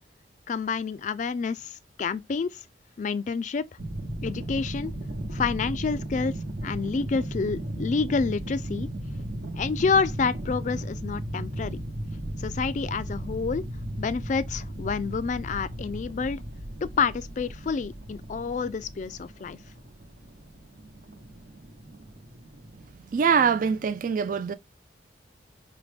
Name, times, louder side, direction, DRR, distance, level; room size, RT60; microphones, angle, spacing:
voice 1, 0.5-2.6 3.0-3.7 4.2-4.9 5.3-6.4 6.6-8.9 9.6-11.8 12.4-13.7 14.0-16.4 16.8-19.6, left 5 dB, 40° left, 0.3 m, -28 dB
sound 1, 3.8-22.9, right 1 dB, 70° right, 1.0 m, -36 dB
voice 2, 23.1-24.5, right 6 dB, 45° right, 0.3 m, -23 dB
5.0 x 2.1 x 3.3 m
head